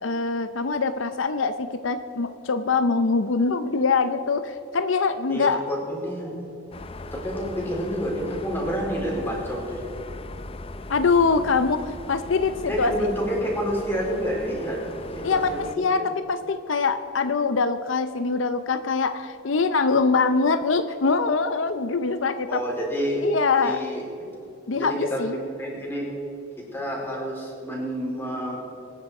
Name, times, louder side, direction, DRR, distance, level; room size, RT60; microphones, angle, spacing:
voice 1, 0.0-5.6 10.9-13.1 15.2-22.6 23.2-23.8 24.7-25.4, left 4 dB, 75° left, 10 dB, 0.6 m, -23 dB
voice 2, 5.3-6.4 7.1-9.8 12.7-16.0 22.5-23.3 23.6-24.0 24.7-26.1 26.7-28.6, equal, 10° left, -3 dB, 4.2 m, -29 dB
sound 1, 6.7-15.8, left 2 dB, 30° left, 0.6 m, -39 dB
24.0 x 10.0 x 4.9 m, 2.9 s
head